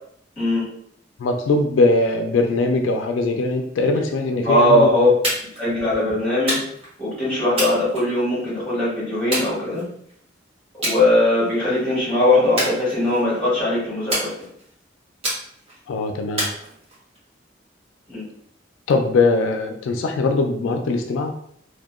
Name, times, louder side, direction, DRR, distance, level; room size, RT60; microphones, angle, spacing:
voice 1, 0.4-0.7 4.4-5.1 5.6-6.6 7.0-9.9 10.8-14.3 18.1-18.2, left 1 dB, 5° left, -9 dB, 1.5 m, -20 dB
voice 2, 1.2-5.1 15.9-16.5 18.9-21.4, left 3 dB, 85° left, 5 dB, 0.3 m, -21 dB
sound 1, 5.2-5.7 6.5-6.9 7.6-8.5 9.3-10.1 10.8-11.0 11.4-11.8 12.6-13.3 14.1-14.7 15.2-15.8 16.4-17.2, right 1 dB, 30° right, 0.9 m, -27 dB
2.7 x 2.2 x 2.4 m, 0.67 s
head